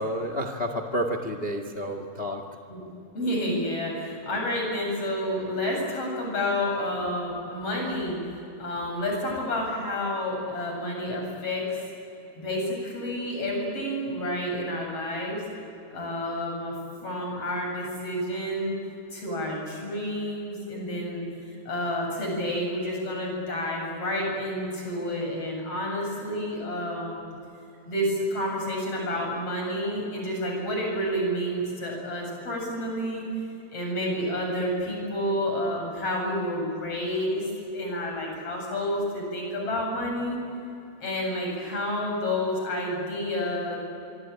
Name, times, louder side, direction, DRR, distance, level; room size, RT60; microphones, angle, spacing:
voice 1, 0.0-2.4, equal, 85° left, 6 dB, 0.5 m, -30 dB
voice 2, 3.1-8.2 8.6-11.8 12.4-15.4 15.9-16.7 17.0-18.7 19.1-21.2 21.7-27.2 27.9-33.2 33.7-40.4 41.0-43.8, left 1 dB, 35° left, 0 dB, 8.9 m, -29 dB
26.5 x 24.5 x 8.9 m, 2.8 s
omnidirectional pair, 4.7 m